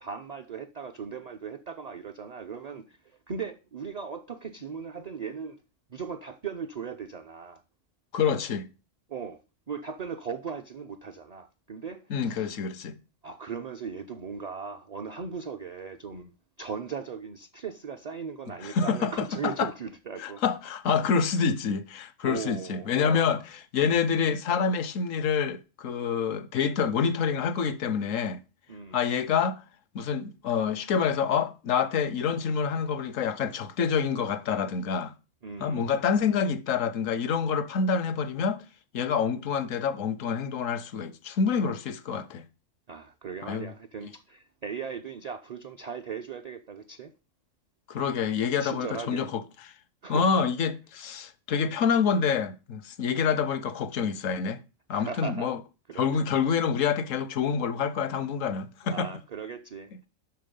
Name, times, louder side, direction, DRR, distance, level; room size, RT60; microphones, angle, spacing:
voice 1, 0.0-5.6 5.9-7.6 9.1-9.4 9.7-12.6 13.2-16.3 16.6-20.4 22.2-23.4 28.7-29.0 35.4-35.9 42.9-47.1 48.6-49.3 50.0-50.3 54.9-55.5 55.9-56.2 58.8-60.1, right 6 dB, 45° right, 0.6 m, -38 dB
voice 2, 8.1-8.7 12.1-13.0 18.6-19.7 20.2-23.4 23.7-28.4 28.9-29.6 29.9-35.1 35.6-38.6 38.9-42.4 43.4-43.7 47.9-49.4 50.1-54.6 54.9-55.6 56.0-59.1, left 6 dB, 85° left, 1.2 m, -27 dB
7.6 x 5.9 x 5.3 m
omnidirectional pair, 1.3 m